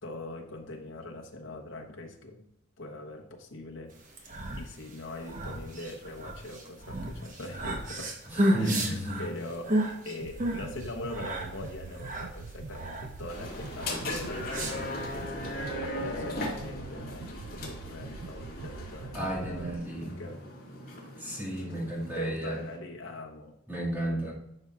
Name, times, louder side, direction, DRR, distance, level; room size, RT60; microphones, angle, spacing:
voice 1, 0.0-2.5 2.8-8.2 8.5-19.7 20.2-20.5 22.1-23.5 24.1-24.3, left 2 dB, 70° left, 1 dB, 1.0 m, -42 dB
sound 1, 4.0-15.2, right 1 dB, 40° right, 1.1 m, -33 dB
voice 2, 8.3-9.2 19.1-20.2 21.2-22.6 23.7-24.3, right 1 dB, 10° right, -6 dB, 2.0 m, -33 dB
sound 2, 10.2-19.8, right 3 dB, 75° right, 0.4 m, -43 dB
sound 3, 13.3-22.8, left 1 dB, 50° left, 2.3 m, -38 dB
11.0 x 5.5 x 2.4 m, 0.81 s
head